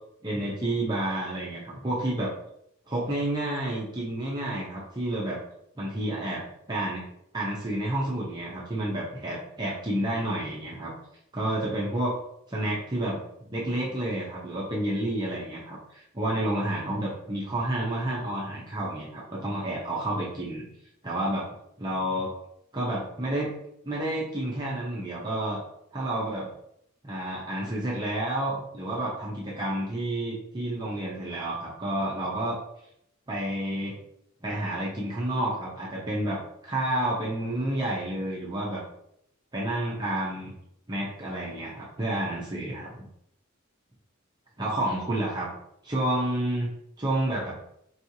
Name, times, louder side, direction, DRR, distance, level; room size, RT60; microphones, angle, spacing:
voice 1, 0.2-2.3 2.9-5.4 5.8-7.0 7.3-10.9 11.3-12.1 12.5-13.2 13.5-20.7 21.0-21.4 21.8-22.3 22.7-23.5 23.8-25.6 25.9-26.5 27.0-32.6 33.3-34.0 34.4-38.8 39.5-40.5 40.9-43.0 44.6-45.5 45.8-46.7 47.0-47.6, right 1 dB, 20° right, -5 dB, 0.7 m, -30 dB
4.7 x 3.0 x 2.7 m, 0.74 s
head